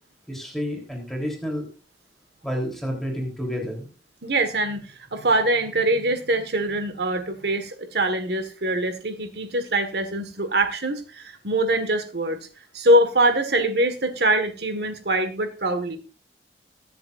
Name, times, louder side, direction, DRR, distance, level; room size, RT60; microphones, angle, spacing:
voice 1, 0.3-1.7 2.4-3.9, equal, ahead, 0 dB, 3.5 m, -30 dB
voice 2, 4.2-12.5 12.7-16.0, right 1 dB, 65° right, 7 dB, 1.6 m, -23 dB
21.0 x 7.7 x 2.5 m, 0.35 s
head